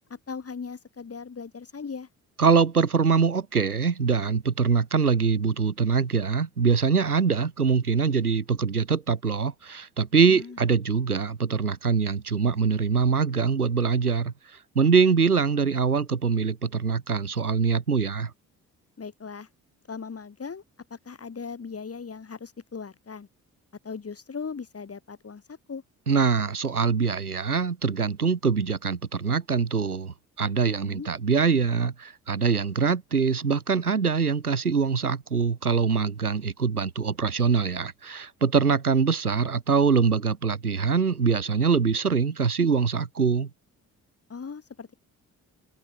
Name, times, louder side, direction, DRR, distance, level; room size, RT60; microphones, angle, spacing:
voice 1, 0.1-2.1 10.3-10.6 19.0-19.5 19.9-20.6 20.9-23.3 23.8-25.8 30.6-31.1 44.3-44.9, left 5 dB, 30° left, 6.6 m, -38 dB
voice 2, 2.4-14.3 14.8-18.3 26.1-43.5, right 5 dB, 90° right, 0.8 m, -23 dB
figure-of-eight pair, 45°, 43 cm